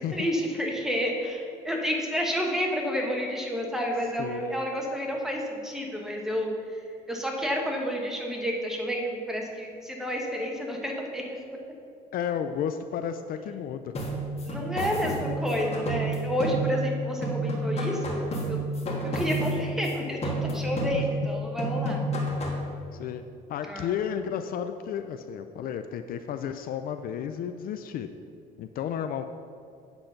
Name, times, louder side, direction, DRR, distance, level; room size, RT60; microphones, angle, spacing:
voice 1, 0.0-6.8 7.1-11.4 14.5-18.2 18.5-18.6 19.1-22.0 23.7-24.0, equal, 5° right, 0 dB, 1.2 m, -30 dB
voice 2, 4.2-4.6 12.1-13.9 16.5-16.6 20.9-21.0 22.9-23.2 23.5-28.1 28.6-29.3, left 8 dB, 60° left, 8 dB, 0.4 m, -32 dB
sound 1, 13.9-17.0 17.2-19.9 20.2-21.3 21.6-22.7, right 1 dB, 40° left, 1.6 m, -30 dB
8.8 x 3.8 x 5.8 m, 2.4 s
cardioid pair, 110°, 17 cm